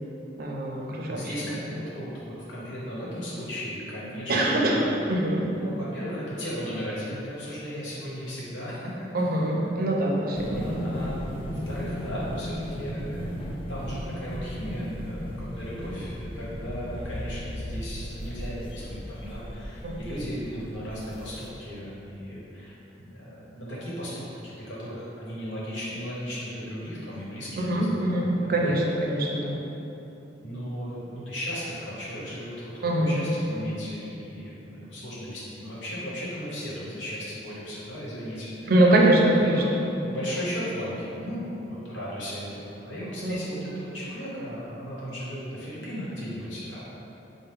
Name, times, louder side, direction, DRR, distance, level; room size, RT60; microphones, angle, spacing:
voice 1, 0.4-1.3 4.3-5.5 9.1-10.9 19.8-20.0 27.6-29.6 32.8-33.3 38.7-39.6 43.2-43.3, right 1 dB, 55° right, -1 dB, 0.5 m, -23 dB
voice 2, 1.1-5.3 5.5-9.1 10.3-28.8 29.1-29.2 30.4-38.9 39.4-46.9, equal, 90° left, -7 dB, 1.1 m, -36 dB
sound 1, 10.3-21.5, equal, 30° left, 0.4 m, -36 dB
4.4 x 2.1 x 3.4 m, 2.9 s
head